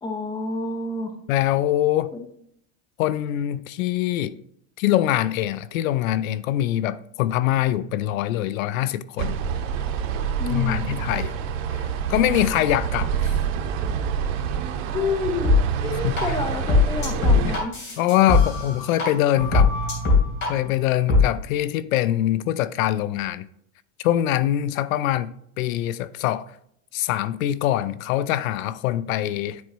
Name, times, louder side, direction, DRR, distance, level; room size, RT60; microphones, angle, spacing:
voice 1, 0.0-1.2 2.1-2.2 10.4-10.9 14.9-15.6 15.8-18.0, left 3 dB, 10° left, 0.7 m, -29 dB
voice 2, 1.3-2.1 3.0-4.4 4.8-9.4 10.5-11.3 12.1-13.3 16.0-16.1 17.4-17.5 18.0-19.7 20.5-23.5 24.0-26.5 26.9-29.6, left 13 dB, 80° left, 0.5 m, -23 dB
sound 1, 9.2-17.6, right 6 dB, 70° right, 0.9 m, -27 dB
sound 2, 15.4-15.6 16.2-16.3 16.7-19.0 19.3-20.5 21.1-21.2, left 3 dB, 30° left, 2.9 m, -19 dB
9.5 x 4.4 x 3.0 m
supercardioid pair, 130°, 40 cm